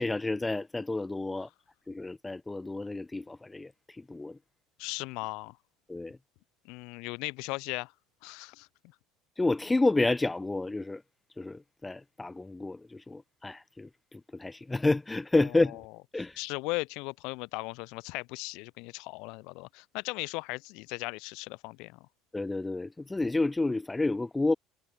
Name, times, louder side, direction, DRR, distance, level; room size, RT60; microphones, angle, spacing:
voice 1, 0.0-1.5 1.9-3.7 4.0-4.4 5.9-6.2 9.4-11.0 11.4-15.8 16.1-16.4 22.3-24.5, left 2 dB, 10° left, 0.6 m, -30 dB
voice 2, 4.8-5.6 6.6-7.9 8.2-8.7 15.3-15.8 16.4-22.1, left 26 dB, 65° left, 3.1 m, -37 dB
cardioid pair, 165°, 0 cm